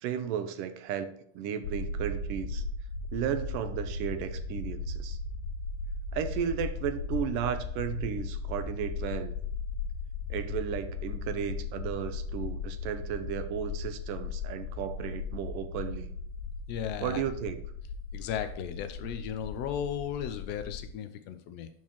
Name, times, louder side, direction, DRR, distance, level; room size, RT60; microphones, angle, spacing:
voice 1, 0.0-2.6 3.1-5.2 6.1-9.3 10.3-16.1 17.0-17.6, right 9 dB, 40° right, 11 dB, 0.6 m, -34 dB
sound 1, 1.6-20.9, left 4 dB, 85° left, 0.9 m, -37 dB
voice 2, 16.7-17.2 18.1-21.7, left 9 dB, 30° left, 9 dB, 0.5 m, -35 dB
11.5 x 4.5 x 3.1 m, 0.67 s
supercardioid pair, 165°, 33 cm